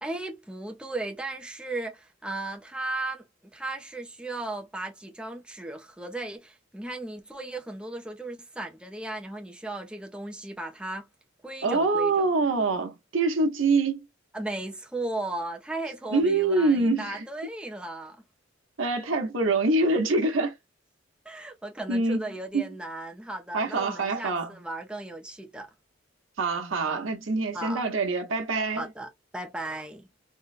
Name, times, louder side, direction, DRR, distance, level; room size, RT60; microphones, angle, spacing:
voice 1, 0.0-11.1 11.4-12.3 14.3-18.2 21.2-25.7 27.5-27.8 28.8-30.1, right 2 dB, 5° right, 0.5 m, -36 dB
voice 2, 11.6-14.0 16.1-17.3 18.8-20.6 21.9-22.2 22.5-22.6 23.5-24.5 26.4-28.9, right 3 dB, 75° right, 0.8 m, -25 dB
3.6 x 2.1 x 2.4 m
head